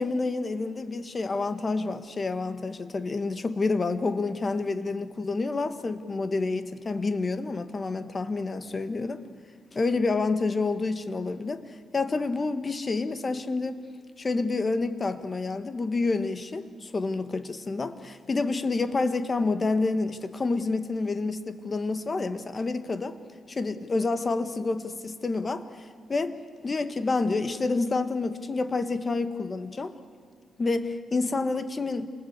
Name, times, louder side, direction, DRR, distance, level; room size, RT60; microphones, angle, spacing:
voice 1, 0.0-9.2 9.7-13.8 14.2-23.2 23.5-26.4 26.6-29.9 30.6-32.1, left 3 dB, 35° left, 1.5 m, -28 dB
27.0 x 20.5 x 8.2 m
cardioid pair, 105°, 0 cm